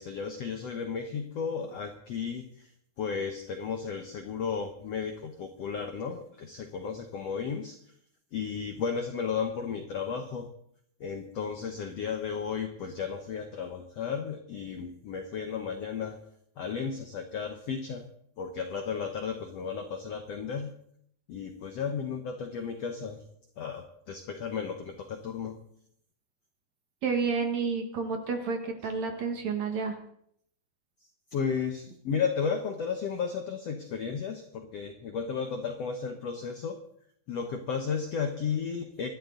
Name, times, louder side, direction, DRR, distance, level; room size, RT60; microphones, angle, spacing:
voice 1, 0.0-2.7 3.0-7.8 8.3-10.5 11.0-16.2 16.6-18.0 18.4-20.7 21.3-23.2 23.6-25.6 31.3-36.8 37.3-39.1, left 6 dB, 70° left, 5 dB, 1.5 m, -34 dB
voice 2, 27.0-30.0, right 5 dB, 55° right, 5 dB, 2.4 m, -30 dB
25.5 x 12.0 x 3.9 m, 0.69 s
omnidirectional pair, 4.3 m